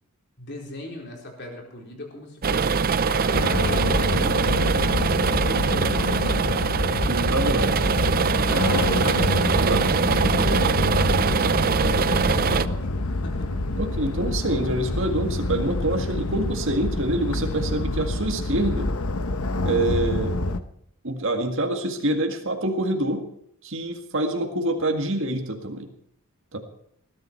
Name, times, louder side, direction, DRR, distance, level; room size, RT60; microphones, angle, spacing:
voice 1, 0.4-4.8 5.1-6.8 8.6-9.4 11.7-13.5, left 1 dB, 50° left, 0 dB, 4.3 m, -39 dB
sound 1, 2.4-12.7, right 5 dB, 40° right, 0.5 m, -23 dB
sound 2, 3.3-20.6, left 2 dB, 70° left, 1.0 m, -26 dB
voice 2, 7.1-7.8 9.6-10.0 13.8-18.9 19.6-20.3 21.0-23.3 23.6-25.9 26.5-26.6, right 1 dB, 60° right, 3 dB, 1.9 m, -26 dB
20.0 x 12.0 x 4.6 m, 0.70 s
head